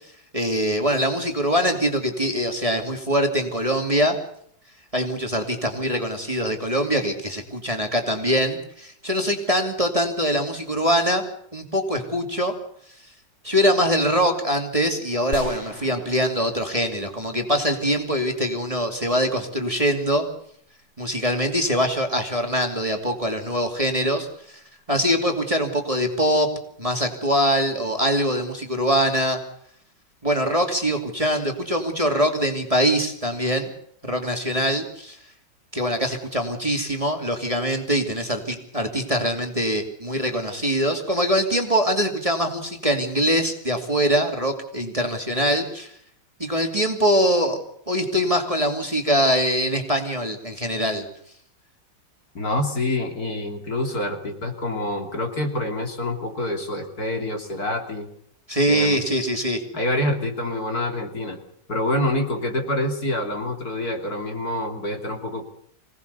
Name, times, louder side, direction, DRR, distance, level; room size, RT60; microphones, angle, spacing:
voice 1, 0.3-4.2 4.9-11.2 11.5-12.5 13.4-20.2 21.0-24.6 24.9-26.5 26.8-29.4 30.2-33.7 34.0-35.2 35.7-45.9 46.4-47.6 47.9-51.0 58.5-59.6, equal, 20° right, 4 dB, 2.6 m, -23 dB
sound 1, 15.3-18.2, left 1 dB, 40° left, 3.2 m, -40 dB
voice 2, 52.4-58.1 58.6-59.0 59.7-61.4 61.7-65.4, left 1 dB, 55° left, 4 dB, 3.5 m, -26 dB
25.5 x 18.0 x 6.8 m, 0.68 s
omnidirectional pair, 1.9 m